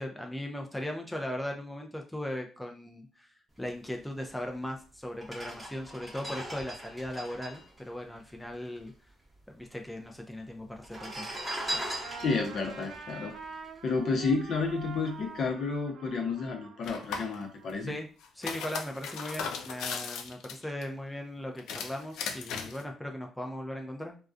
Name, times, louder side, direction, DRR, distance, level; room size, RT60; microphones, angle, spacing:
voice 1, 0.0-3.3 3.6-8.9 9.5-11.3 17.8-18.1 18.3-24.2, left 1 dB, 5° left, 2 dB, 0.4 m, -38 dB
sound 1, 4.5-4.6 5.1-8.8 9.1-9.2 9.4-10.1 10.7-14.2 14.7-14.9, right 1 dB, 10° right, 0.9 m, -40 dB
Trumpet, 10.9-18.1, right 5 dB, 75° right, 0.5 m, -46 dB
voice 2, 12.2-13.3 13.8-17.9, left 4 dB, 60° left, 3 dB, 0.6 m, -31 dB
sound 2, 16.8-17.4 18.2-20.8 21.6-22.8, left 6 dB, 85° left, 0.3 m, -37 dB
2.3 x 2.2 x 2.5 m, 0.38 s
cardioid pair, 90°, 0 cm